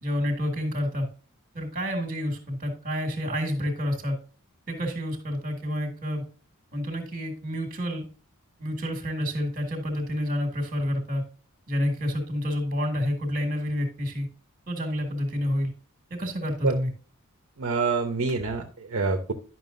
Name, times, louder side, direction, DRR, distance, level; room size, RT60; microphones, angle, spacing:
voice 1, 0.0-1.1 1.5-4.2 4.7-6.3 6.7-8.1 8.6-11.2 11.7-14.3 14.7-15.7 16.1-16.9, equal, 40° right, 4 dB, 1.9 m, -29 dB
voice 2, 17.6-19.3, right 4 dB, 60° right, 3 dB, 0.8 m, -26 dB
11.0 x 6.0 x 2.6 m, 0.37 s
head